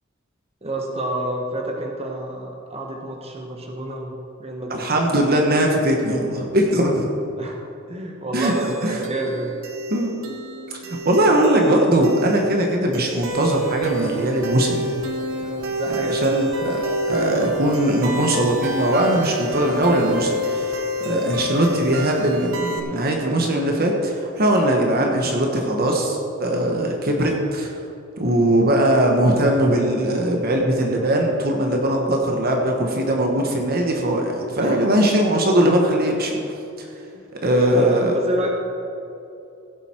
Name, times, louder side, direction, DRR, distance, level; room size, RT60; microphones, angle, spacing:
voice 1, 0.6-4.9 7.4-7.6 7.9-9.5 15.4-16.3 34.6-34.8 37.1-38.5, right 1 dB, 30° right, 0 dB, 1.4 m, -29 dB
voice 2, 4.7-7.1 8.3-9.0 9.9-10.1 10.7-14.9 15.9-16.8 17.1-20.8 21.0-27.8 28.2-36.4 36.8-36.9 37.4-38.2, right 1 dB, 50° right, 1 dB, 1.4 m, -20 dB
sound 1, 8.4-22.8, equal, 70° right, 1.3 m, -29 dB
16.5 x 7.9 x 4.5 m, 2.7 s
head